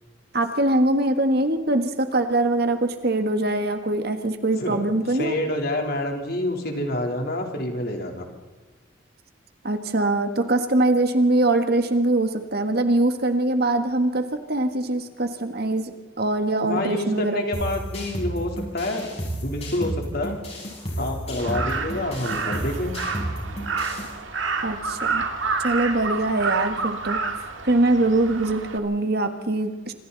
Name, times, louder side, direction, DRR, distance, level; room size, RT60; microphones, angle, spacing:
voice 1, 0.3-5.3 9.6-17.4 24.6-25.3 25.6-27.2 27.6-29.9, right 2 dB, 55° right, 7 dB, 1.7 m, -23 dB
voice 2, 4.6-8.3 16.6-19.2 19.4-20.4 21.0-22.9, left 1 dB, 55° left, 2 dB, 3.6 m, -28 dB
sound 1, 17.5-24.1, equal, 30° left, 7.2 m, -32 dB
Crow, 21.4-28.8, right 4 dB, 80° right, 2.2 m, -29 dB
26.5 x 26.0 x 4.1 m, 1.2 s
head